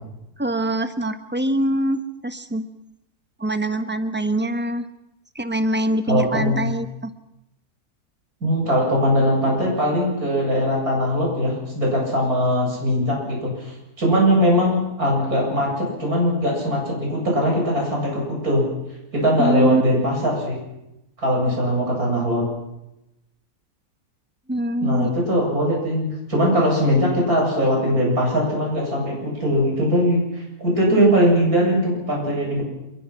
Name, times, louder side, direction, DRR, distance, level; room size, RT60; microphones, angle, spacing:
voice 1, 0.4-2.6 3.4-4.9 5.3-7.1 19.4-19.8 24.5-25.1, right 1 dB, 10° right, 9 dB, 1.1 m, -23 dB
voice 2, 6.1-6.8 8.4-18.6 19.1-20.6 21.2-22.4 24.8-32.6, equal, 65° right, -2 dB, 8.7 m, -20 dB
27.5 x 22.5 x 5.9 m, 0.91 s
omnidirectional pair, 1.7 m